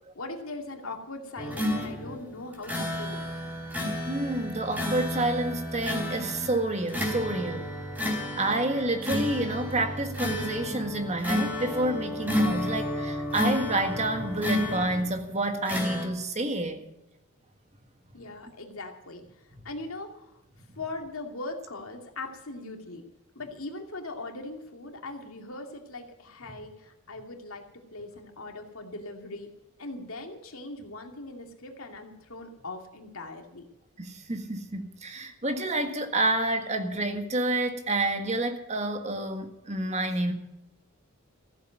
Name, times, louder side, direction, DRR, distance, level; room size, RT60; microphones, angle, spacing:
voice 1, 0.1-3.3 18.1-20.4 20.8-23.0 23.3-29.5 29.8-33.6, left 2 dB, 75° left, 2.5 m, -40 dB
sound 1, 1.4-15.2 15.7-16.1, left 1 dB, 5° right, 4.8 m, -31 dB
voice 2, 4.1-7.7 8.4-16.8 34.0-40.3, right 2 dB, 30° right, 1.7 m, -29 dB
15.5 x 8.1 x 9.1 m
head